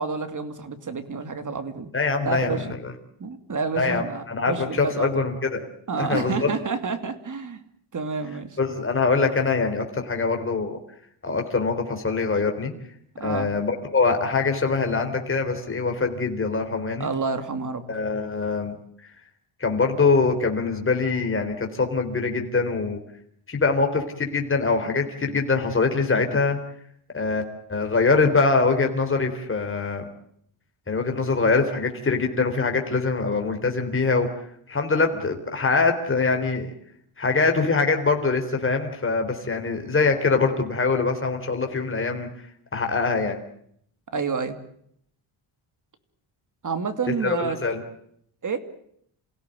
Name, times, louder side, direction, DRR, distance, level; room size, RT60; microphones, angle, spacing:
voice 1, 0.0-1.9 2.2-2.7 3.2-5.2 5.9-7.6 7.9-8.6 13.2-13.5 17.0-17.8 44.1-44.6 46.6-47.6 48.4-48.6, right 5 dB, 35° right, 10 dB, 2.7 m, -29 dB
voice 2, 1.9-2.6 3.8-5.6 6.0-6.5 8.6-10.8 11.2-12.7 13.2-17.1 17.9-18.7 19.6-23.0 23.5-26.6 27.1-27.4 27.7-30.1 30.9-34.3 34.7-36.7 37.2-42.3 42.7-43.4 47.2-47.8, left 4 dB, 25° left, 4 dB, 3.9 m, -23 dB
28.5 x 16.5 x 9.3 m, 0.69 s
wide cardioid pair, 135°, 49 cm